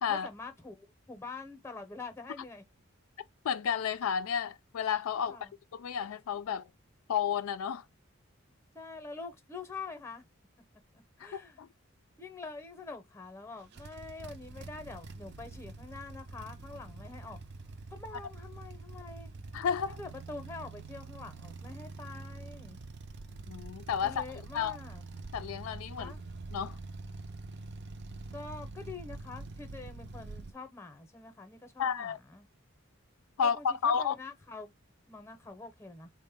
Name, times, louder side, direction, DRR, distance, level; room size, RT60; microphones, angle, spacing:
voice 1, 0.1-2.6 5.3-5.5 8.7-10.2 10.9-11.6 12.2-17.4 17.9-19.3 20.0-22.8 24.0-25.0 26.0-26.2 28.3-32.5 33.4-34.7 35.1-36.1, left 3 dB, 10° left, 0.7 m, -45 dB
voice 2, 3.4-5.4 5.7-6.7 7.1-7.8 11.2-11.7 19.5-20.0 23.5-24.2 24.5-24.8 25.3-26.1 26.5-26.8 31.8-32.2 33.4-34.2, left 7 dB, 85° left, 0.4 m, -31 dB
sound 1, 13.6-30.5, right 3 dB, 55° right, 0.4 m, -45 dB
3.9 x 2.1 x 3.4 m
head